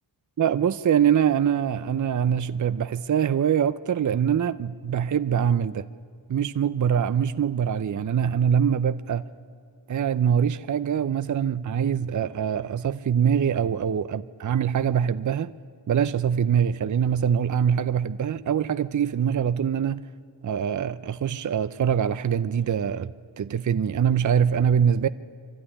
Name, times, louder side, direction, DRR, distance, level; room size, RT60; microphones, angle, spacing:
voice 1, 0.4-5.9 6.3-9.2 9.9-15.5 15.9-20.0 20.4-23.1 23.4-25.1, right 8 dB, 40° right, 0.6 m, -23 dB
24.0 x 12.5 x 9.9 m
cardioid pair, 50°, 48 cm